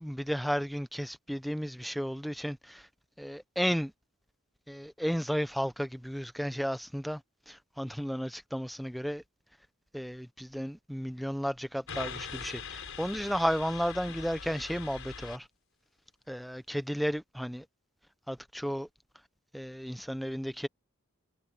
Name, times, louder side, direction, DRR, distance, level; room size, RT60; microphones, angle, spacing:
voice 1, 0.0-2.9 3.2-3.9 4.7-7.2 7.5-9.2 9.9-15.5 16.3-17.7 18.3-18.9 19.5-20.7, equal, ahead, 0.8 m, -33 dB
sound 1, 11.9-15.4, left 5 dB, 65° left, 6.0 m, -42 dB
head